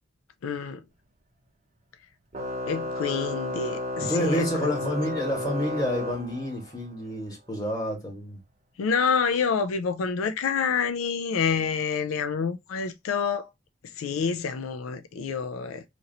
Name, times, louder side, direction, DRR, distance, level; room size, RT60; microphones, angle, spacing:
voice 1, 0.4-0.8 2.7-4.7 8.8-13.5 14.0-15.8, left 6 dB, 90° left, 0.4 m, -27 dB
Organ, 2.3-6.9, left 2 dB, 35° right, 0.6 m, -32 dB
voice 2, 4.0-8.4, equal, 20° left, 1.6 m, -29 dB
2.9 x 2.6 x 4.0 m
head